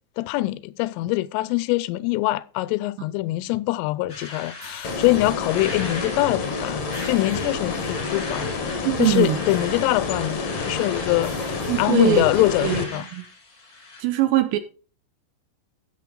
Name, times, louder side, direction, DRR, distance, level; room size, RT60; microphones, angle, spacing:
voice 1, 0.2-6.8 7.0-8.5 8.8-11.3 11.8-13.1, left 19 dB, 90° left, 3.2 m, -23 dB
sound 1, 4.1-14.0, left 3 dB, 35° left, 1.4 m, -39 dB
sound 2, 4.6-5.5 6.8-8.0 9.0-10.3 11.2-12.5, right 5 dB, 55° right, 4.2 m, -50 dB
sound 3, 4.8-12.8, left 4 dB, 70° left, 1.4 m, -29 dB
voice 2, 8.8-9.4 11.7-12.2 12.6-12.8 13.1-13.2 14.0-14.6, right 13 dB, 80° right, 2.7 m, -21 dB
13.0 x 7.4 x 3.7 m
omnidirectional pair, 5.6 m